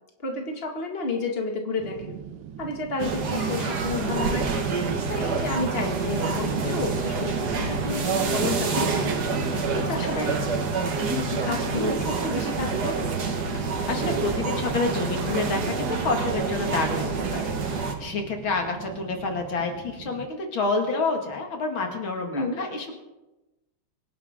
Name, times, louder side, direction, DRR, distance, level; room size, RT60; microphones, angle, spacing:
voice 1, 0.2-2.2 2.6-4.5 5.1-9.2 9.7-10.4 11.2-13.0 22.3-22.6, left 3 dB, 30° left, 1 dB, 2.3 m, -31 dB
sound 1, 1.8-20.3, right 9 dB, 90° right, 1.7 m, -42 dB
sound 2, 3.0-17.9, right 4 dB, 55° right, 2.0 m, -27 dB
sound 3, 3.7-15.1, left 2 dB, 55° left, 2.9 m, -48 dB
voice 2, 10.1-10.6 13.9-23.0, left 3 dB, 85° left, 3 dB, 2.9 m, -28 dB
25.0 x 11.0 x 3.7 m, 1.0 s
omnidirectional pair, 2.1 m